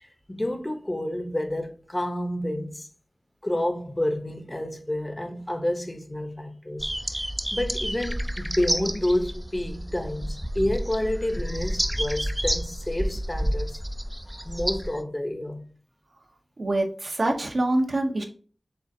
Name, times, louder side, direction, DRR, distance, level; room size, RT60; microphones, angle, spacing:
voice 1, 0.0-2.9 3.4-6.9 7.5-13.8 14.3-15.6, left 1 dB, 25° left, 0.7 m, -29 dB
sound 1, 6.8-15.0, equal, 10° right, 0.3 m, -30 dB
voice 2, 16.6-18.2, right 1 dB, 70° right, 0.7 m, -25 dB
6.6 x 2.4 x 2.6 m
wide cardioid pair, 55°, 0 cm